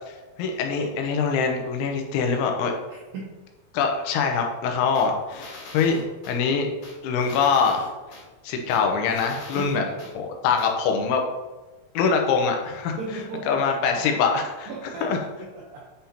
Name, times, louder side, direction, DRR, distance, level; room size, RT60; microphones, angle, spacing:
voice 1, 0.4-2.7 3.7-6.7 7.0-7.9 8.4-9.8 10.2-11.2 11.9-13.0 13.5-14.7 15.0-15.2, left 5 dB, 85° left, 3 dB, 3.2 m, -23 dB
voice 2, 2.9-3.3 9.6-10.0 12.9-13.6 14.7-15.1 15.4-15.9, right 3 dB, 80° right, -3 dB, 2.0 m, -36 dB
sound 1, 4.9-6.4 6.8-8.2 8.7-10.1 10.6-10.7, left 3 dB, 50° left, 3.7 m, -42 dB
10.0 x 5.7 x 2.8 m, 1.2 s
omnidirectional pair, 5.3 m